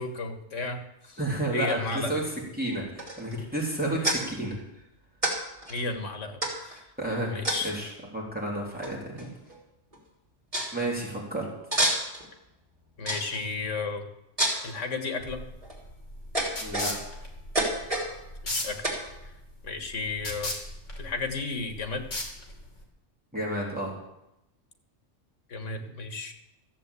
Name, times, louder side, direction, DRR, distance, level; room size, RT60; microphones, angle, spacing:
voice 1, 0.0-1.2 1.5-2.1 5.7-6.9 7.3-7.7 13.0-14.1 14.6-15.4 18.4-18.9 19.2-19.3 19.6-20.5 21.0-22.0 25.5-26.3, left 3 dB, 90° left, 6 dB, 1.8 m, -33 dB
voice 2, 1.2-2.2 2.6-4.6 7.0-7.4 7.6-9.3 10.7-11.5 16.6-16.9 23.3-23.9, right 1 dB, 5° right, -4 dB, 3.3 m, -31 dB
sound 1, 3.0-3.4 4.0-4.2 5.2-5.3 5.6-5.7 6.4-6.8 7.4-7.8 8.8-8.9 9.2-9.6 9.9-10.0 10.5-10.7 11.7-12.3 13.1-13.4 14.4-14.7 15.4-15.8 16.3-17.1 17.5-18.1 18.8-19.0, right 1 dB, 30° right, 3.2 m, -28 dB
sound 2, 15.2-22.8, left 2 dB, 75° left, 2.8 m, -37 dB
14.0 x 7.5 x 8.2 m, 0.89 s
omnidirectional pair, 1.2 m